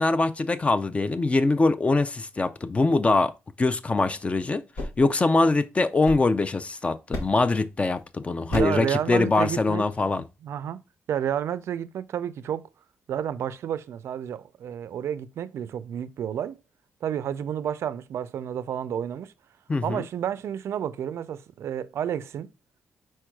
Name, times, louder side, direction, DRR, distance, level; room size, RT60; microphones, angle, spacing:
voice 1, 0.0-3.3 3.6-4.6 5.0-10.2 19.7-20.0, left 3 dB, 25° left, 0.4 m, -23 dB
sound 1, 4.6-6.7 7.1-7.6 8.5-8.9, left 1 dB, 85° left, 1.4 m, -36 dB
voice 2, 8.5-10.8 11.1-12.7 13.1-16.6 17.0-19.3 19.8-22.5, right 9 dB, 75° right, 0.4 m, -31 dB
4.6 x 4.4 x 2.3 m
cardioid pair, 85°, 5 cm